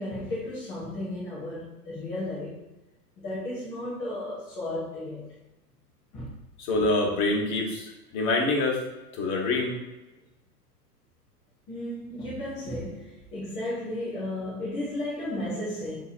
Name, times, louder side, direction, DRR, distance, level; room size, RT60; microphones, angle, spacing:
voice 1, 0.0-2.6 3.2-5.3 6.1-6.3 11.7-16.0, left 1 dB, 10° left, 0.4 m, -34 dB
voice 2, 6.6-8.8 9.1-9.7, left 2 dB, 40° left, 1.1 m, -26 dB
6.0 x 2.8 x 2.5 m
figure-of-eight pair, 100°, 48 cm